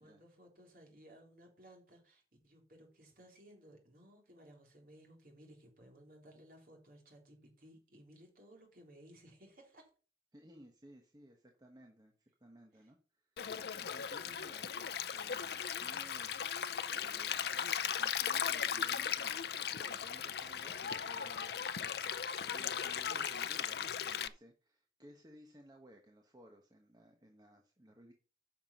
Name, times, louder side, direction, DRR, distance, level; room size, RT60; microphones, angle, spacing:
voice 1, 0.0-9.9 12.8-12.9 22.9-23.3, right 1 dB, 50° right, 1 dB, 3.4 m, -59 dB
voice 2, 10.3-13.5 13.8-16.4 16.9-22.2 22.5-28.1, equal, 20° right, 2 dB, 1.1 m, -59 dB
Stream, 13.4-24.3, left 8 dB, 60° left, 0.5 m, -37 dB
9.1 x 5.9 x 5.8 m, 0.38 s
head